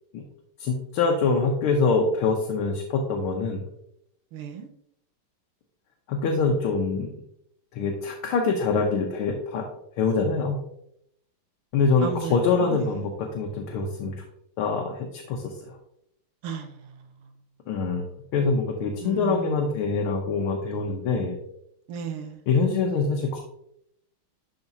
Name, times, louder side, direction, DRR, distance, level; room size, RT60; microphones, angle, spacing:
voice 1, 0.6-3.6 6.1-7.1 7.7-9.6 10.0-10.6 11.7-14.1 14.6-15.7 17.7-18.0 18.3-21.4 22.5-23.4, left 4 dB, 85° left, 1 dB, 1.7 m, -24 dB
voice 2, 4.3-4.7 12.0-13.1 16.4-17.0 19.0-19.8 21.9-22.4, right 6 dB, 85° right, 7 dB, 1.7 m, -35 dB
11.5 x 3.9 x 2.7 m, 0.75 s
omnidirectional pair, 2.3 m